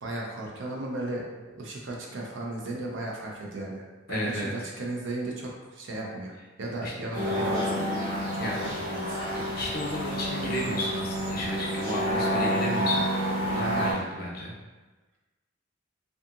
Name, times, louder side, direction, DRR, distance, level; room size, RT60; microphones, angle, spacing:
voice 1, 0.0-6.3 6.6-7.8 8.3-9.2, right 2 dB, 65° right, -2 dB, 0.5 m, -35 dB
voice 2, 4.1-4.5 6.8-6.9 8.4-8.6 9.3-14.5, left 1 dB, 50° left, -3 dB, 0.6 m, -33 dB
sound 1, 7.1-13.9, equal, 45° right, 1.4 m, -29 dB
2.7 x 2.4 x 2.4 m, 1.2 s
head